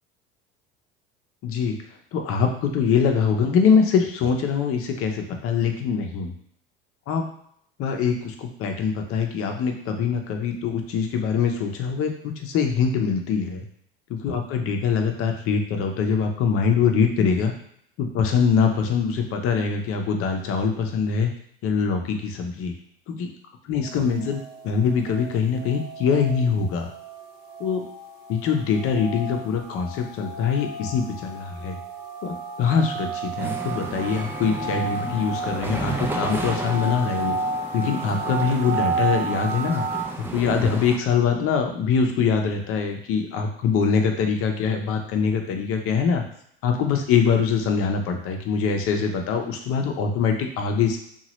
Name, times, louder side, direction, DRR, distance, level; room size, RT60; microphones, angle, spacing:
voice 1, 1.4-1.8 2.1-6.3 7.1-7.3 7.8-13.6 14.1-17.5 18.0-21.3 21.6-22.7 23.1-23.3 23.7-26.9 27.6-27.8 28.3-31.8 32.2-37.4 37.7-39.8 40.3-46.2 46.6-51.0, left 6 dB, 50° left, 4 dB, 0.7 m, -23 dB
sound 1, 23.8-40.0, right 4 dB, 35° right, 1.1 m, -32 dB
sound 2, 33.4-41.0, right 2 dB, 5° right, 0.4 m, -33 dB
2.9 x 2.4 x 3.0 m, 0.68 s
hypercardioid pair, 80°, 29 cm